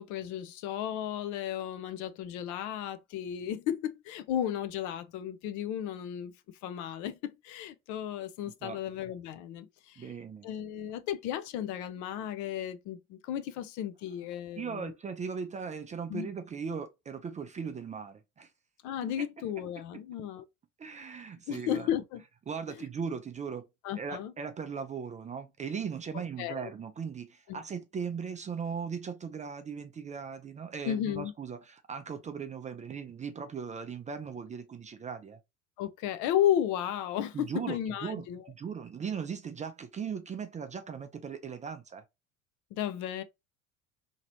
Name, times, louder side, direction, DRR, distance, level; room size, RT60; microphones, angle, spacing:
voice 1, 0.0-6.3 6.6-10.1 10.4-14.9 16.1-16.3 18.8-20.4 21.5-22.2 22.7-22.8 23.8-24.3 26.4-26.7 27.5-27.6 30.8-31.3 35.8-38.4 42.7-43.2, left 10 dB, 50° left, 0.5 m, -34 dB
voice 2, 10.0-10.5 14.6-18.5 19.0-19.3 20.8-21.9 22.5-23.6 24.0-35.4 37.3-42.0, right 6 dB, 20° right, 0.4 m, -38 dB
2.9 x 2.8 x 2.9 m
figure-of-eight pair, 65°, 40 cm